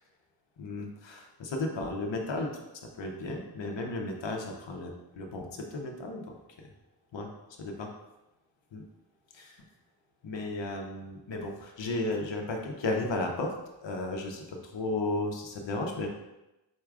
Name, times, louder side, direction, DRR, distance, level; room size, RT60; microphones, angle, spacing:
voice 1, 0.6-2.5 2.9-6.7 7.1-7.3 7.6-7.9 8.7-8.8 9.3-9.6 10.2-13.5 13.8-16.1, left 2 dB, 75° left, 1 dB, 0.7 m, -34 dB
4.6 x 4.3 x 2.4 m, 0.97 s
wide cardioid pair, 85°, 45 cm